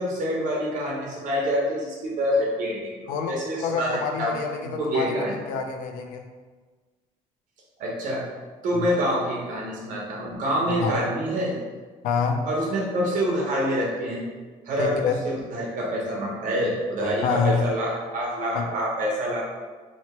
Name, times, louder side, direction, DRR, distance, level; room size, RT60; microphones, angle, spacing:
voice 1, 0.0-4.4 4.6-5.3 7.8-8.2 8.6-11.6 12.4-14.2 14.7-19.4, equal, 70° right, -4 dB, 1.0 m, -26 dB
voice 2, 3.6-6.3 8.7-8.9 10.7-11.0 12.0-12.5 14.8-15.2 17.2-17.6 18.5-18.6, left 5 dB, 90° left, 4 dB, 0.5 m, -27 dB
3.0 x 2.9 x 4.4 m, 1.4 s
cardioid pair, 115°, 14 cm